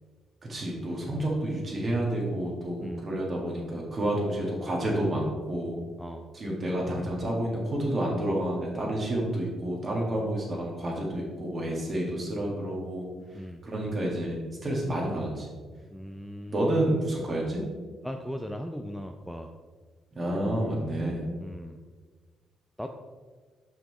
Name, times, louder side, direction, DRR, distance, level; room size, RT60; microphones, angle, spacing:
voice 1, 0.5-5.8 6.3-13.1 13.6-15.5 16.5-17.6 20.2-21.3, right 1 dB, 40° right, -2 dB, 1.8 m, -29 dB
voice 2, 15.9-16.6 18.0-19.5 21.4-21.8 22.8-22.9, equal, ahead, 4 dB, 0.4 m, -38 dB
5.7 x 5.4 x 3.2 m, 1.5 s
cardioid pair, 90°, 0 cm